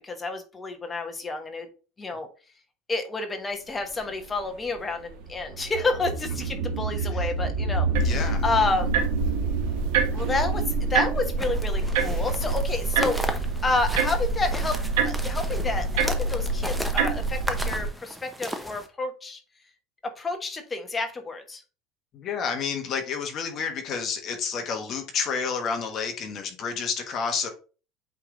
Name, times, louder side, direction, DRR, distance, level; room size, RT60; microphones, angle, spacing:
voice 1, 0.0-1.7 2.0-2.3 2.9-8.9 10.1-19.4 20.0-21.6, left 3 dB, 15° left, 1.0 m, -30 dB
sound 1, 3.9-12.9, right 3 dB, 55° right, 1.4 m, -30 dB
voice 2, 7.0-7.3 8.0-8.4 22.1-27.5, left 6 dB, 35° left, 1.2 m, -30 dB
sound 2, 7.9-17.9, right 3 dB, 80° right, 1.6 m, -26 dB
sound 3, 11.4-18.9, equal, 5° right, 0.6 m, -36 dB
8.2 x 3.3 x 3.8 m
cardioid pair, 165°, 0 cm